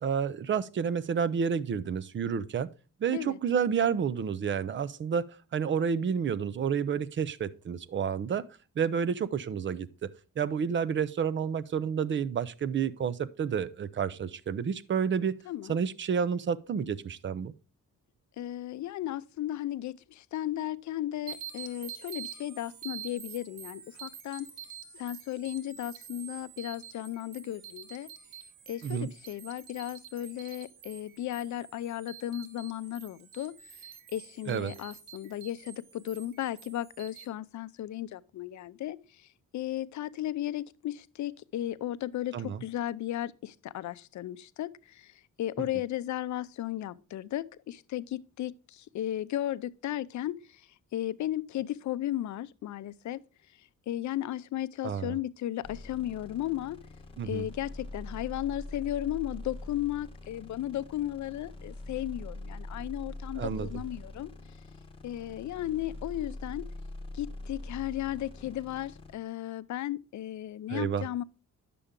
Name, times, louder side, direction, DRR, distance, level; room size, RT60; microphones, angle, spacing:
voice 1, 0.0-2.7 3.0-5.3 5.5-8.4 8.8-10.1 10.4-15.4 15.7-17.5 28.8-29.1 34.5-34.7 42.3-42.6 45.6-45.7 54.8-55.2 57.2-57.5 63.4-63.7 70.7-71.0, right 7 dB, 40° right, 0.6 m, -30 dB
voice 2, 15.5-15.8 18.4-24.5 24.9-28.1 28.7-53.2 53.9-56.8 57.2-64.3 65.0-66.7 67.1-71.2, left 13 dB, 65° left, 0.5 m, -35 dB
sound 1, 21.3-37.2, right 9 dB, 90° right, 1.4 m, -47 dB
sound 2, 55.6-69.1, left 2 dB, 15° left, 1.4 m, -43 dB
10.0 x 6.8 x 3.7 m
cardioid pair, 130°, 31 cm